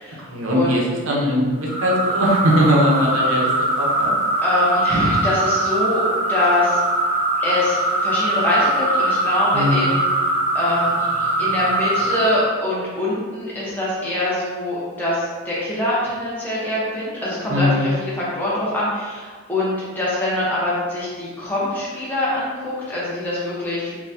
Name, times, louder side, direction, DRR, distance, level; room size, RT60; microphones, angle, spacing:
voice 1, 0.3-3.5 3.8-4.1 9.5-9.9 17.5-17.9, equal, 65° right, -3 dB, 0.6 m, -20 dB
sound 1, 1.6-12.5, right 2 dB, 35° left, 0.8 m, -21 dB
voice 2, 4.4-6.8 7.4-7.8 8.0-10.0 10.5-10.9 11.4-23.9, left 1 dB, 10° left, -8 dB, 0.8 m, -23 dB
3.9 x 2.2 x 2.7 m, 1.5 s
head